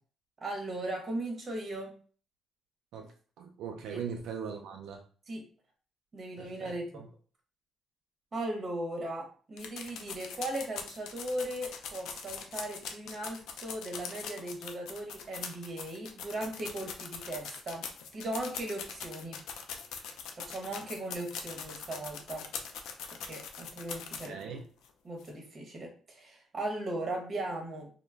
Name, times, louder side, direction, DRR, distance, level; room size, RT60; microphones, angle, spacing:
voice 1, 0.4-1.9 3.9-4.0 5.3-5.4 6.1-7.0 8.3-17.8 18.1-19.4 20.4-22.4 23.3-24.5 25.0-27.9, right 1 dB, 40° right, 0.9 m, -38 dB
voice 2, 3.4-5.0 6.4-7.1 24.2-24.7, right 6 dB, 85° right, 0.3 m, -40 dB
sound 1, 9.6-24.4 24.8-24.9 25.2-25.3, left 6 dB, 85° left, 0.3 m, -42 dB
2.2 x 2.0 x 3.3 m
cardioid pair, 90°, 0 cm